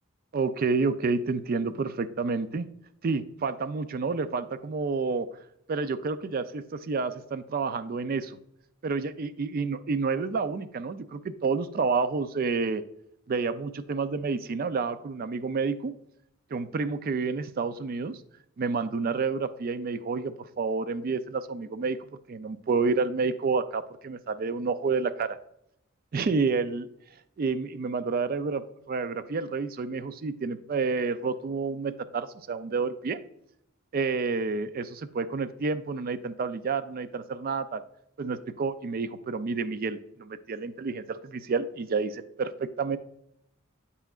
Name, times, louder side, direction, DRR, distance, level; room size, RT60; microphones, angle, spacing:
voice 1, 0.3-2.7 3.0-5.3 5.7-8.4 8.8-12.8 13.3-16.0 16.5-18.2 18.6-22.0 22.3-25.4 26.1-26.9 27.4-33.2 33.9-37.8 38.2-43.0, right 4 dB, 45° right, 12 dB, 0.4 m, -29 dB
8.0 x 5.6 x 2.4 m, 0.76 s
head